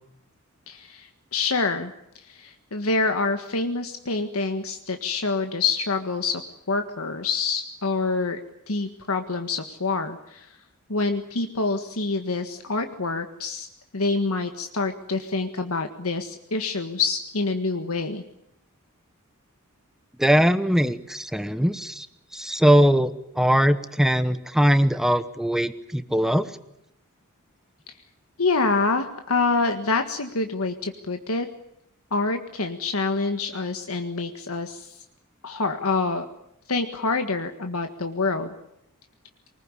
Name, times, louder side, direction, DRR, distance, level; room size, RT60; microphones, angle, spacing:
voice 1, 0.7-6.4 6.7-8.4 8.7-10.5 10.9-13.7 13.9-18.2 28.4-31.5 32.1-35.0 35.4-36.3 36.7-38.5, left 3 dB, 80° left, 6 dB, 1.7 m, -26 dB
voice 2, 20.2-22.1 22.3-26.5, equal, ahead, 11 dB, 1.0 m, -21 dB
24.0 x 20.5 x 9.8 m, 0.81 s
head